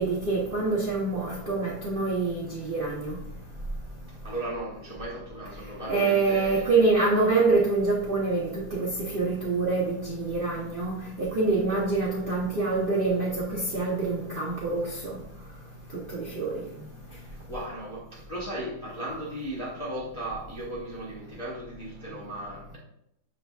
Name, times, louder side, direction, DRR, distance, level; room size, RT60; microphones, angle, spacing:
voice 1, 0.0-3.2 5.9-14.9 16.4-16.5, right 3 dB, 60° right, 0.5 m, -26 dB
voice 2, 4.2-6.9 17.1-22.8, right 1 dB, 35° left, 0.5 m, -36 dB
6.0 x 3.8 x 2.3 m
omnidirectional pair, 2.0 m